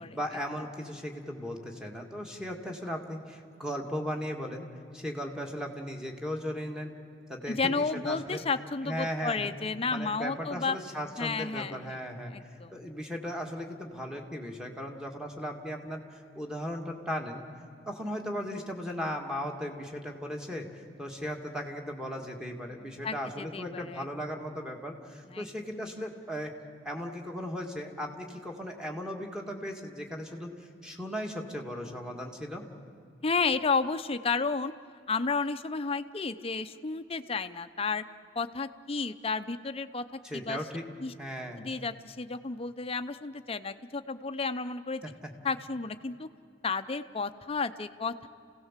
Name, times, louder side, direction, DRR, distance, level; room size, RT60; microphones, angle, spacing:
voice 1, 0.1-4.7 4.9-6.9 7.3-8.4 8.8-9.5 9.9-12.3 12.7-17.4 17.9-26.5 26.8-30.5 30.8-32.6 40.2-40.8 41.2-41.6 45.0-45.3, equal, 5° right, 1 dB, 1.9 m, -37 dB
voice 2, 7.5-10.8 11.2-12.0 12.3-12.7 23.0-24.1 25.3-25.5 33.2-34.7 35.1-38.0 38.4-40.6 41.0-41.1 41.6-45.0 45.4-46.3 46.6-48.3, left 4 dB, 30° left, 10 dB, 0.7 m, -32 dB
28.5 x 17.0 x 7.4 m, 2.5 s
head